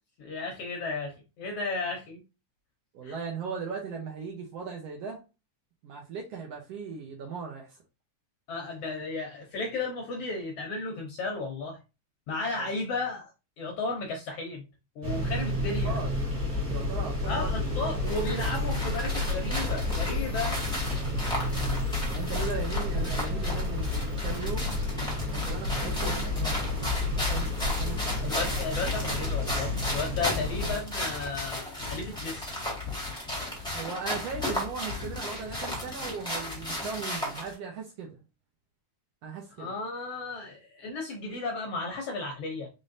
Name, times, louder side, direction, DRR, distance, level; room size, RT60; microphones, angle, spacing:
voice 1, 0.2-2.2 3.0-3.2 8.5-11.8 12.3-13.3 13.6-14.6 14.9-16.0 17.2-20.6 22.3-22.5 28.2-32.6 39.6-42.7, left 3 dB, 70° left, 1 dB, 1.5 m, -34 dB
voice 2, 2.9-5.2 5.8-7.8 12.5-12.8 15.8-16.1 16.7-17.5 22.0-24.8 25.3-28.3 28.6-28.7 30.2-30.4 33.7-38.2 39.2-39.7, right 5 dB, 70° right, 0 dB, 1.6 m, -38 dB
sound 1, 15.0-30.7, left 2 dB, 30° right, 1.7 m, -30 dB
sound 2, 18.1-37.5, left 1 dB, 5° left, 0.7 m, -35 dB
4.9 x 3.7 x 2.6 m, 0.28 s
omnidirectional pair, 3.6 m